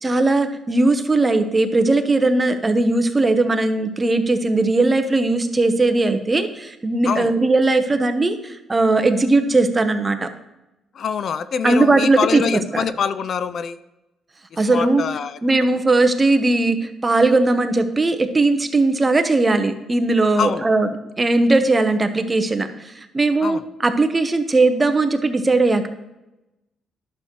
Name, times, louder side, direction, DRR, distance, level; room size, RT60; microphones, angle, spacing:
voice 1, 0.0-10.3 11.6-12.4 12.7-12.8 14.6-15.0 15.4-20.9 21.2-25.9, right 2 dB, 25° right, 7 dB, 0.9 m, -18 dB
voice 2, 10.9-13.8 14.7-15.7 20.4-20.7 23.4-23.6, left 7 dB, 60° left, 13 dB, 0.4 m, -25 dB
11.5 x 6.7 x 3.1 m, 0.96 s
cardioid pair, 90°, 0 cm